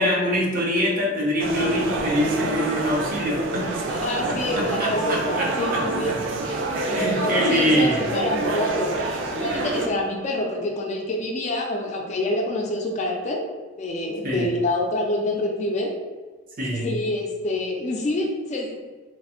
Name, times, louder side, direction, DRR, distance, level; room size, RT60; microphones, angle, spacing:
voice 1, 0.0-3.9 4.3-6.2 6.9-8.0 14.2-14.5 16.6-16.9, equal, 50° right, -2 dB, 0.6 m, -24 dB
sound 1, 1.4-9.9, right 3 dB, 85° right, 0.3 m, -27 dB
voice 2, 3.9-6.2 6.5-13.4 13.8-15.9 16.8-18.8, left 1 dB, 40° left, 1 dB, 0.4 m, -27 dB
3.1 x 2.0 x 2.8 m, 1.3 s
head